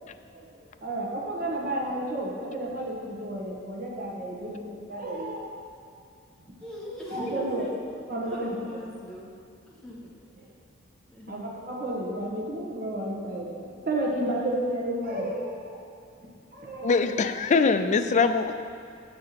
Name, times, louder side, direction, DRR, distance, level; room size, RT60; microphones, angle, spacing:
voice 1, 0.3-5.5 7.1-7.7 8.1-8.6 10.3-10.5 11.3-11.4 11.7-15.8 16.2-17.0, right 1 dB, 45° right, -3 dB, 1.3 m, -32 dB
voice 2, 4.4-4.9 6.6-7.7 8.3-9.3 9.7-10.1 11.1-11.6 14.4-14.5, equal, 5° left, -6 dB, 1.4 m, -40 dB
voice 3, 16.8-18.5, left 4 dB, 40° left, 9 dB, 0.4 m, -22 dB
6.8 x 5.6 x 5.8 m, 2.5 s
head